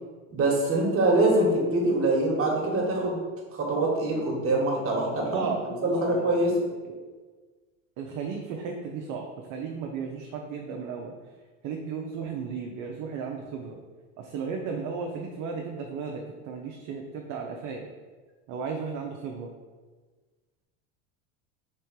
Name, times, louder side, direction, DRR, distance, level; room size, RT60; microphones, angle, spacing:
voice 1, 0.3-3.2 3.5-5.4 5.8-6.6, right 2 dB, 35° right, -2 dB, 1.5 m, -24 dB
voice 2, 5.3-6.6 6.8-7.0 8.0-11.1 11.6-13.8 14.2-17.8 18.5-19.5, right 5 dB, 50° right, 1 dB, 0.7 m, -35 dB
3.6 x 3.2 x 4.5 m, 1.4 s
supercardioid pair, 95°, 39 cm